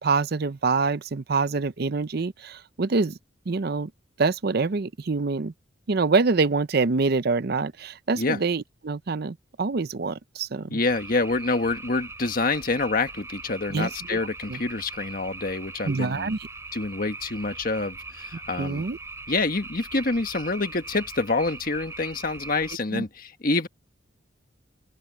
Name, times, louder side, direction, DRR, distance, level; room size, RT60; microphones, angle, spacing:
voice 1, 0.0-3.2 3.5-3.9 4.2-5.5 5.9-10.8 13.7-14.2 14.5-14.6 15.8-16.4 18.6-19.0 22.9-23.0, right 4 dB, 55° right, 0.6 m, -25 dB
voice 2, 10.7-16.3 16.7-18.8 19.3-23.7, left 3 dB, 45° left, 1.5 m, -27 dB
sound 1, 10.9-22.8, right 3 dB, 15° right, 4.8 m, -41 dB
open air
head